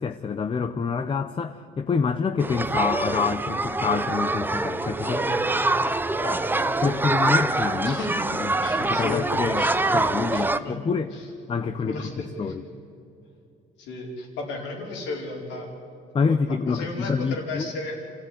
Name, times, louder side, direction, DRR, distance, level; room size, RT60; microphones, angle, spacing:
voice 1, 0.0-5.2 6.8-8.0 8.3-8.5 8.8-9.6 9.9-11.1 11.5-12.0 12.4-12.6 16.1-17.7, left 5 dB, 30° left, 9 dB, 0.8 m, -27 dB
sound 1, 2.4-10.6, right 2 dB, 10° right, 0.8 m, -25 dB
voice 2, 5.0-7.4 7.8-8.2 8.6-9.8 10.3-10.8 11.1-11.3 11.9-12.5 13.8-15.7 16.3-18.0, left 2 dB, 85° left, 0 dB, 4.6 m, -35 dB
27.0 x 14.5 x 9.5 m, 2.7 s
cardioid pair, 100°, 18 cm